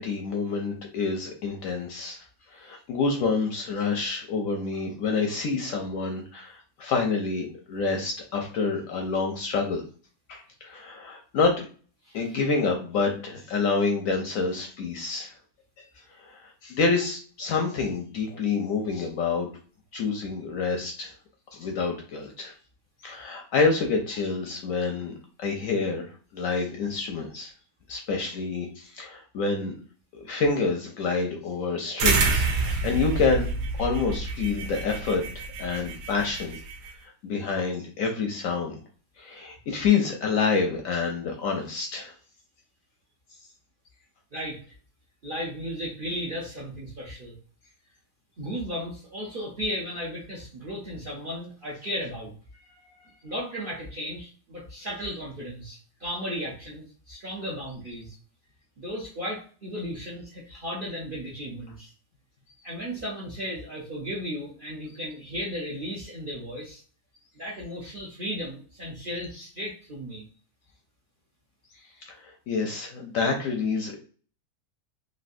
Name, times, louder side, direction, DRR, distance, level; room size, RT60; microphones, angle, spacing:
voice 1, 0.0-2.2 2.5-9.8 10.3-11.6 12.1-15.3 15.8-15.9 16.2-19.5 19.9-21.1 21.5-22.5 23.0-26.1 26.3-27.5 27.9-29.7 30.1-33.5 33.8-36.6 37.0-38.8 39.2-42.1 72.1-72.2 72.5-74.0, left 4 dB, 70° left, 2 dB, 0.9 m, -27 dB
sound 1, 32.0-36.9, right 3 dB, 85° right, 1.2 m, -28 dB
voice 2, 45.2-47.3 48.4-52.3 53.2-58.1 58.8-61.9 62.6-66.8 67.4-70.3, equal, 50° right, -4 dB, 0.6 m, -35 dB
3.2 x 2.6 x 2.6 m, 0.41 s
omnidirectional pair, 1.8 m